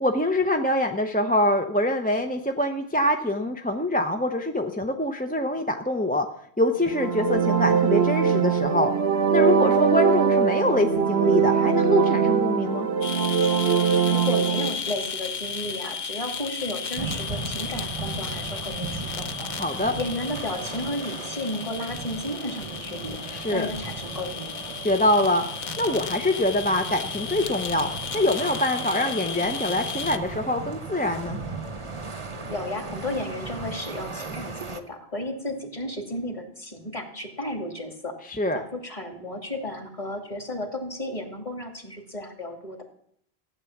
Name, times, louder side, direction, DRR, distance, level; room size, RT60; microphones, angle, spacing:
voice 1, 0.0-6.3 6.6-8.9 9.3-12.9 19.5-19.9 23.3-23.7 24.7-25.4 25.8-27.9 28.1-31.4 38.3-38.6, left 1 dB, 10° left, 4 dB, 0.7 m, -24 dB
sound 1, 6.8-14.7, right 6 dB, 75° right, 1.3 m, -22 dB
sound 2, 13.0-30.2, left 6 dB, 50° left, 0.9 m, -34 dB
voice 2, 14.0-19.5 20.0-24.5 32.5-38.1 38.5-42.8, left 1 dB, 30° left, 4 dB, 2.4 m, -33 dB
sound 3, 17.0-34.8, right 3 dB, 30° right, 1.1 m, -36 dB
15.0 x 9.8 x 7.2 m, 0.68 s
omnidirectional pair, 1.1 m